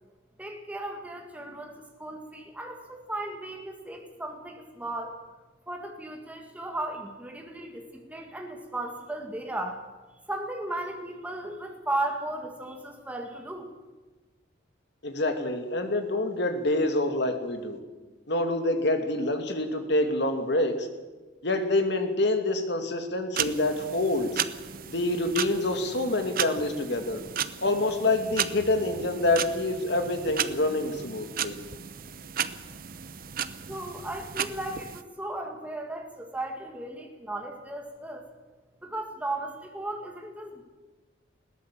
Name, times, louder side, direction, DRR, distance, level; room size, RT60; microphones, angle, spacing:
voice 1, 0.4-5.2 5.7-9.8 10.3-13.7 33.7-38.3 38.8-40.6, right 1 dB, 5° right, 2 dB, 2.0 m, -36 dB
voice 2, 15.0-17.8 18.3-20.9 21.4-24.4 24.9-27.2 27.6-31.5, left 2 dB, 60° left, 6 dB, 2.6 m, -26 dB
sound 1, 23.4-35.0, right 8 dB, 50° right, 0.8 m, -35 dB
20.5 x 17.5 x 7.6 m, 1.3 s
head